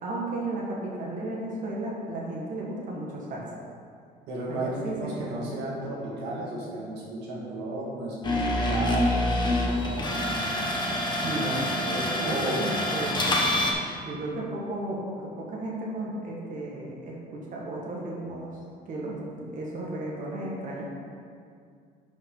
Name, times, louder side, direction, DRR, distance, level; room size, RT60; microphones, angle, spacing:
voice 1, 0.0-3.5 4.5-4.9 5.3-5.4 11.2-11.8 12.2-13.3 14.0-18.6 18.8-20.8, right 2 dB, 50° right, -3 dB, 1.6 m, -34 dB
voice 2, 4.3-10.5 11.1-12.6, right 1 dB, 90° right, -4 dB, 2.0 m, -34 dB
sound 1, 8.2-13.7, left 1 dB, 25° left, 1.4 m, -26 dB
11.0 x 5.6 x 3.9 m, 2.2 s
cardioid pair, 110°, 17 cm